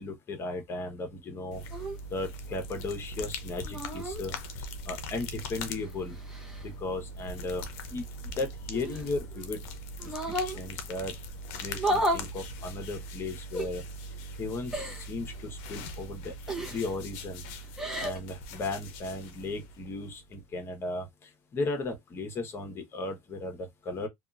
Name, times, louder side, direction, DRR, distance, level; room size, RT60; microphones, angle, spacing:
voice 1, 0.0-1.6 2.1-6.1 6.6-7.6 7.9-8.0 8.4-9.6 10.3-11.1 11.6-13.8 14.4-16.3 16.7-17.4 18.0-21.1 21.5-24.1, left 2 dB, 35° left, 1.0 m, -36 dB
sound 1, 1.5-20.4, left 1 dB, 80° left, 0.6 m, -41 dB
sound 2, 1.7-2.0 3.6-4.2 5.6-6.7 8.7-9.5 10.0-10.6 11.7-12.3 13.5-13.7 14.7-15.1 16.5-16.9 17.6-18.2, right 1 dB, 5° right, 1.0 m, -32 dB
2.7 x 2.4 x 2.4 m
supercardioid pair, 115°, 7 cm